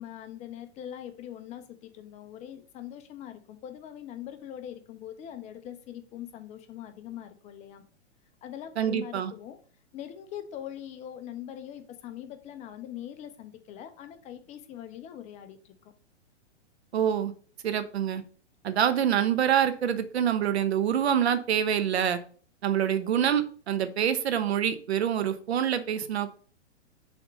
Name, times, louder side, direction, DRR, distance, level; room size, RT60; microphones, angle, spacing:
voice 1, 0.0-7.8 8.4-9.6 9.9-15.9, left 10 dB, 20° left, 8 dB, 0.5 m, -42 dB
voice 2, 8.8-9.3 16.9-17.3 17.6-18.2 18.6-22.2 22.6-26.3, right 9 dB, 65° right, 10 dB, 1.0 m, -26 dB
6.4 x 3.5 x 5.1 m, 0.43 s
figure-of-eight pair, 115°, 35 cm